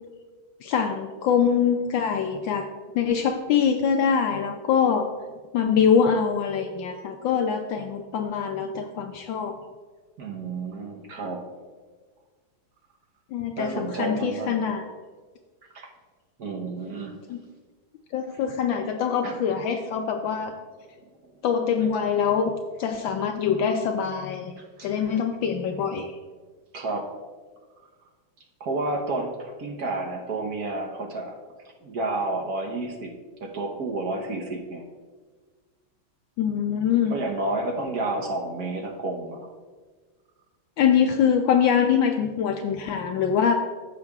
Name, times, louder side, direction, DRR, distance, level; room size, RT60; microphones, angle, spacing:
voice 1, 0.6-2.7 2.9-5.1 5.5-9.6 13.3-14.9 17.3-17.4 18.1-20.5 21.4-24.5 24.8-26.1 36.4-37.1 40.8-43.5, left 7 dB, 75° left, 4 dB, 1.2 m, -24 dB
voice 2, 10.2-11.4 13.6-14.6 15.7-15.9 16.4-17.1 19.2-19.4 21.2-21.3 24.8-25.2 26.7-27.1 28.6-31.4 31.8-33.1 33.4-34.8 37.1-39.4, right 2 dB, 55° right, 1 dB, 1.3 m, -30 dB
15.0 x 6.8 x 2.4 m, 1.4 s
omnidirectional pair, 2.3 m